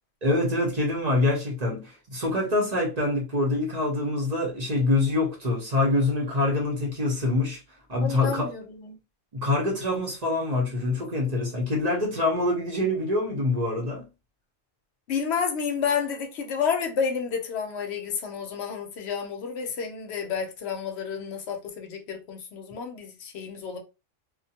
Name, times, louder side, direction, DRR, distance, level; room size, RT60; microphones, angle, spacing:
voice 1, 0.2-7.6 7.9-8.5 9.3-14.1, left 2 dB, 40° right, 0.8 m, -25 dB
voice 2, 8.0-9.0 15.1-23.8, left 6 dB, 65° left, 0.9 m, -30 dB
2.4 x 2.1 x 2.7 m
omnidirectional pair, 1.3 m